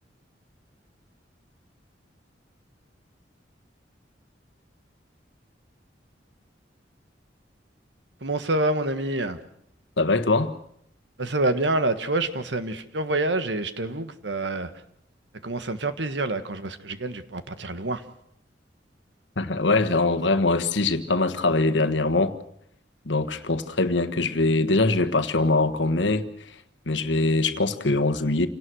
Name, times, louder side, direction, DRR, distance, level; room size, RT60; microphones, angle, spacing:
voice 1, 8.2-9.4 11.2-14.7 15.4-18.0, right 2 dB, 70° right, 10 dB, 1.6 m, -27 dB
voice 2, 10.0-10.5 19.4-22.3 23.0-26.3 26.9-28.5, left 2 dB, 85° left, 9 dB, 1.5 m, -22 dB
28.0 x 18.0 x 6.3 m, 0.72 s
head